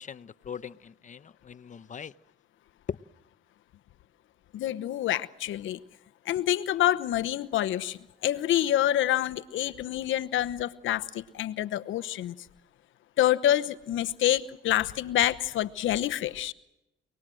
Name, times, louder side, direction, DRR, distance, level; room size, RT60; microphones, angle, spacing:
voice 1, 0.0-2.1 2.9-3.0, left 7 dB, 40° left, 0.9 m, -40 dB
voice 2, 4.5-5.8 6.3-12.4 13.2-16.5, left 12 dB, 80° left, 1.0 m, -27 dB
29.0 x 20.0 x 7.7 m
cardioid pair, 90°, 20 cm